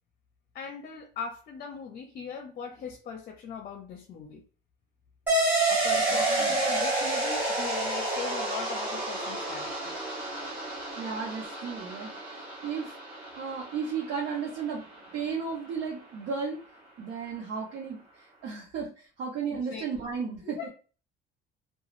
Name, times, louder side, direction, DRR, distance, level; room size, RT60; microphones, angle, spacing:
voice 1, 0.5-4.4 5.7-10.0 19.5-19.8 20.4-20.7, left 6 dB, 50° left, 4 dB, 0.5 m, -40 dB
sound 1, 5.3-14.3, right 2 dB, 10° right, 1.3 m, -29 dB
voice 2, 6.0-6.6 11.0-12.9 13.3-16.6 17.0-20.7, right 6 dB, 80° right, -3 dB, 0.9 m, -35 dB
3.0 x 2.3 x 2.5 m, 0.38 s
cardioid pair, 135°, 20 cm